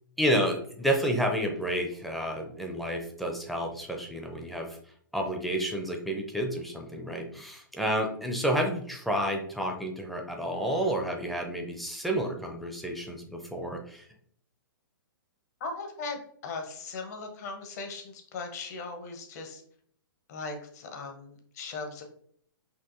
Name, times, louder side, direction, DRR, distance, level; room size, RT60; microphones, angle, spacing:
voice 1, 0.2-4.8 5.1-14.1, equal, ahead, 1 dB, 0.5 m, -30 dB
voice 2, 15.6-19.6 20.3-22.0, left 3 dB, 45° left, 4 dB, 0.9 m, -38 dB
5.7 x 2.5 x 2.6 m, 0.62 s
figure-of-eight pair, 115°, 12 cm